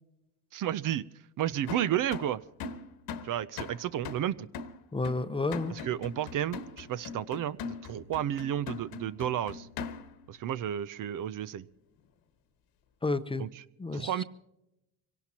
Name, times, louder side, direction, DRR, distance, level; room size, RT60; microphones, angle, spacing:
voice 1, 0.5-1.0 1.4-2.4 3.2-4.5 5.7-9.7 10.3-11.7 13.4-13.5 13.9-14.2, right 11 dB, 55° right, 16 dB, 0.6 m, -32 dB
sound 1, 1.7-10.3, left 5 dB, 70° left, 1.3 m, -41 dB
voice 2, 4.9-5.7 13.0-13.5 13.8-14.2, left 3 dB, 15° left, 11 dB, 0.7 m, -31 dB
24.5 x 17.5 x 2.9 m, 0.88 s
cardioid pair, 95°, 39 cm